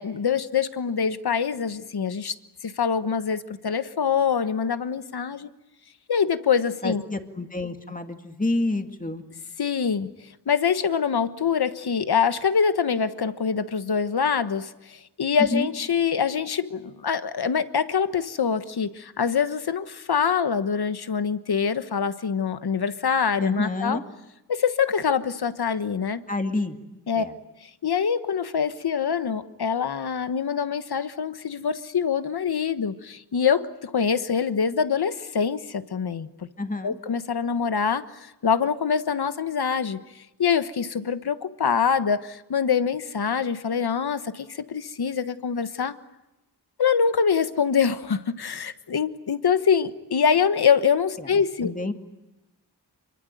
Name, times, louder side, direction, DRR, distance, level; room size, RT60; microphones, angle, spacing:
voice 1, 0.0-2.3 2.6-5.5 6.1-7.0 9.6-10.1 10.5-24.0 24.5-26.2 27.1-27.2 27.8-36.5 36.8-40.0 40.4-45.9 46.8-51.7, left 6 dB, 70° left, 11 dB, 1.4 m, -24 dB
voice 2, 6.8-9.2 15.4-15.7 23.4-24.0 26.3-26.8 27.2-27.3 36.6-37.0 51.2-51.3 51.6-51.9, left 2 dB, 20° left, 6 dB, 2.2 m, -28 dB
26.5 x 24.0 x 9.2 m, 0.98 s
wide cardioid pair, 110°, 40 cm